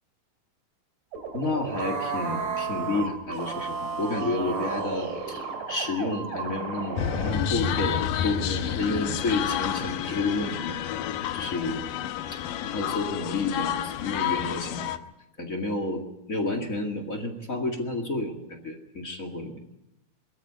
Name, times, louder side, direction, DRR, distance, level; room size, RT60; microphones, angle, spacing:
sound 1, 1.1-7.4, right 5 dB, 55° right, 4.2 m, -33 dB
voice 1, 1.3-10.7 11.3-11.9 12.3-14.8 15.4-19.6, left 3 dB, 30° left, 6 dB, 1.7 m, -30 dB
sound 2, 7.0-15.0, left 10 dB, 70° left, 2.3 m, -30 dB
22.5 x 14.0 x 9.5 m, 0.88 s
omnidirectional pair, 4.6 m